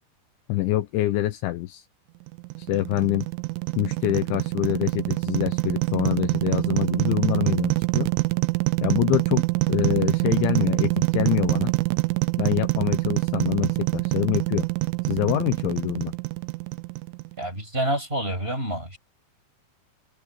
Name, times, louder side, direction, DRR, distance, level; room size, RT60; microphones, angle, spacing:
voice 1, 0.5-1.8 2.7-3.3 3.8-8.1 8.8-11.7 12.4-14.7 15.1-16.1, left 16 dB, 75° left, 3.1 m, -25 dB
sound 1, 2.3-17.5, right 24 dB, 80° right, 3.2 m, -25 dB
voice 2, 17.4-19.0, right 1 dB, 10° right, 6.8 m, -28 dB
omnidirectional pair, 5.7 m